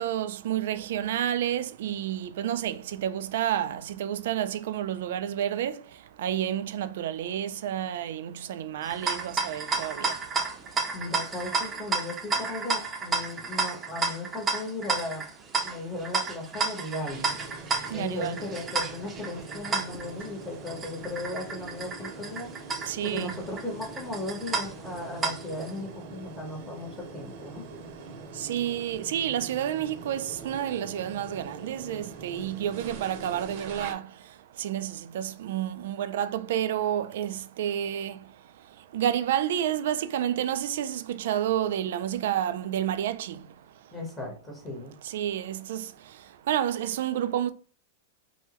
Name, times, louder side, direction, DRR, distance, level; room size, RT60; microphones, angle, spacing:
voice 1, 0.0-5.8 6.2-10.1 17.9-18.4 22.9-23.3 28.4-34.0 34.6-38.2 38.9-43.4 45.1-45.9 46.5-47.5, right 10 dB, 70° right, 0.4 m, -30 dB
sound 1, 8.8-25.7, right 4 dB, 20° right, 0.6 m, -32 dB
voice 2, 10.9-15.2 15.6-17.3 17.9-22.5 23.0-27.6 43.9-44.9, left 2 dB, 20° left, 1.2 m, -36 dB
sound 2, 17.1-33.9, right 3 dB, 50° right, 0.8 m, -44 dB
3.5 x 2.2 x 3.0 m
supercardioid pair, 145°, 0 cm